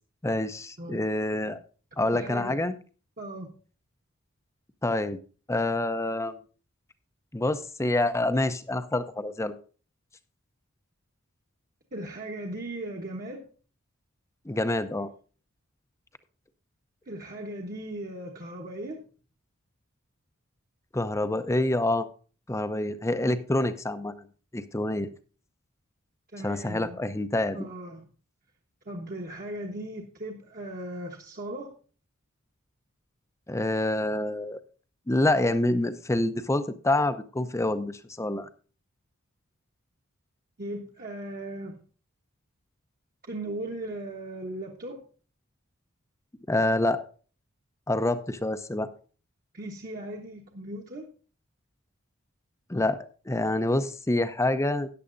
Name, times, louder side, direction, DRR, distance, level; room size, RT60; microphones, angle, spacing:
voice 1, 0.2-1.6 2.0-2.8 4.8-5.2 5.5-6.4 7.3-9.6 14.5-15.1 20.9-22.1 22.5-24.1 24.5-25.1 26.4-27.6 33.5-34.6 35.1-38.5 46.5-47.0 47.9-48.9 52.7-54.9, left 2 dB, 15° left, 11 dB, 0.6 m, -27 dB
voice 2, 2.0-2.6 3.2-3.5 11.9-13.4 17.1-19.0 26.3-27.0 27.5-28.0 28.9-31.7 40.6-41.8 43.3-45.0 49.5-51.1, right 1 dB, 40° right, 1 dB, 1.2 m, -37 dB
14.0 x 9.8 x 2.6 m, 0.38 s
head